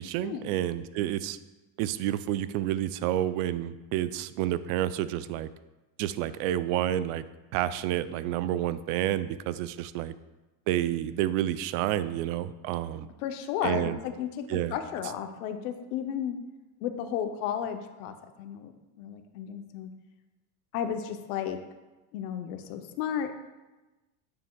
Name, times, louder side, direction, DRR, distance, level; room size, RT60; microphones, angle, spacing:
voice 1, 0.0-1.4 1.8-5.5 6.0-7.2 7.5-10.1 10.7-13.1 13.6-14.0 14.5-14.7, right 12 dB, 75° right, 14 dB, 0.5 m, -29 dB
voice 2, 13.2-16.4 16.8-18.7 19.0-19.9 20.7-21.6 22.1-23.3, left 9 dB, 85° left, 7 dB, 0.8 m, -33 dB
9.3 x 6.8 x 2.3 m, 1.1 s
supercardioid pair, 125°, 44 cm